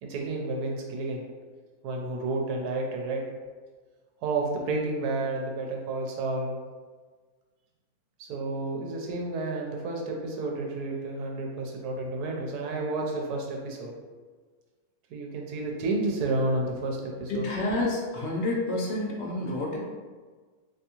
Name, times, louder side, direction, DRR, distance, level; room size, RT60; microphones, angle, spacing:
voice 1, 0.0-1.2 1.8-3.3 4.2-6.5 8.2-13.9 15.1-17.5, right 2 dB, 90° right, 0 dB, 1.1 m, -31 dB
voice 2, 17.3-19.8, left 2 dB, 60° left, -2 dB, 0.8 m, -29 dB
3.4 x 2.8 x 2.8 m, 1.4 s
omnidirectional pair, 1.6 m